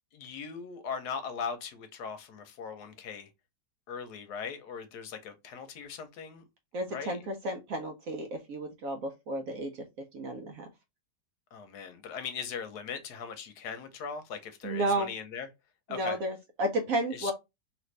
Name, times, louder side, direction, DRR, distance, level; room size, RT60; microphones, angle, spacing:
voice 1, 0.1-3.3 3.9-6.4 6.9-7.2 11.5-15.5 15.9-16.2 17.1-17.3, left 6 dB, 75° left, 1.1 m, -39 dB
voice 2, 6.7-9.8 10.1-10.7 14.6-15.1 15.9-17.3, right 1 dB, 70° right, 0.8 m, -32 dB
3.0 x 2.5 x 3.1 m
omnidirectional pair, 1.9 m